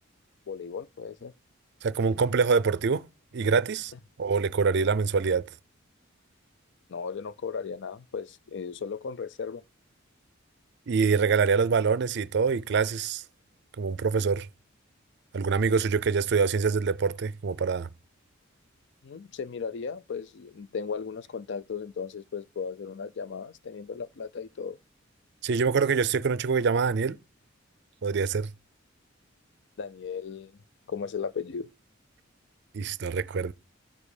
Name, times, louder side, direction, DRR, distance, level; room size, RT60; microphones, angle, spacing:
voice 1, 0.5-1.3 6.9-9.6 19.0-24.8 29.8-30.5 30.9-31.7, left 6 dB, 60° left, 0.5 m, -36 dB
voice 2, 1.8-3.1 3.3-3.9 4.2-5.5 10.9-13.2 13.8-14.5 15.3-17.9 25.4-27.2 28.0-28.5 32.7-33.5, right 5 dB, 55° right, 0.4 m, -25 dB
12.5 x 7.3 x 4.9 m
head